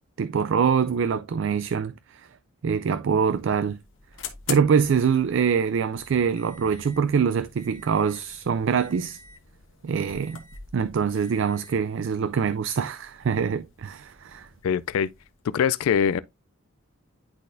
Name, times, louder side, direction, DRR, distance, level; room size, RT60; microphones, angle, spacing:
voice 1, 0.2-2.3 2.6-3.8 4.5-9.2 9.8-10.4 10.7-14.5, right 6 dB, 55° right, 0.3 m, -24 dB
sound 1, 3.0-15.4, left 7 dB, 60° left, 1.2 m, -45 dB
voice 2, 14.6-15.1 15.4-16.2, left 7 dB, 80° left, 0.3 m, -23 dB
10.5 x 4.1 x 2.6 m
head